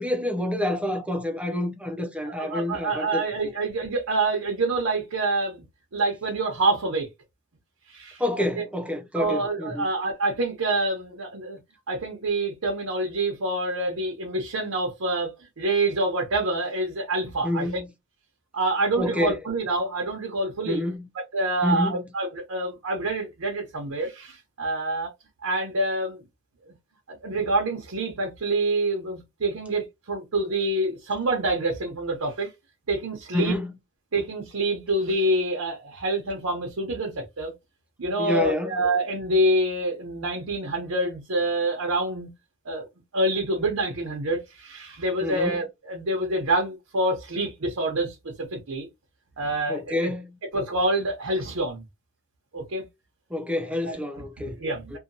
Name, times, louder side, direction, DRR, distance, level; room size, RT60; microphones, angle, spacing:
voice 1, 0.0-3.2 8.2-9.9 17.4-17.9 19.0-19.4 20.6-21.1 21.6-22.1 33.3-33.7 38.2-38.8 45.2-45.6 49.7-50.3 53.3-54.6 54.9-55.0, left 1 dB, 5° right, 0.4 m, -28 dB
voice 2, 2.3-5.6 5.9-7.1 7.9-8.2 8.5-8.6 9.1-11.6 11.9-17.8 18.5-20.8 21.1-25.1 25.4-26.2 26.7-26.8 27.1-32.5 32.9-33.6 34.1-37.5 38.0-42.3 42.6-42.8 43.1-48.9 49.4-50.1 50.5-51.8 52.5-52.9 53.8-54.0 54.4-55.0, right 2 dB, 90° right, 0.8 m, -27 dB
2.7 x 2.2 x 2.6 m
head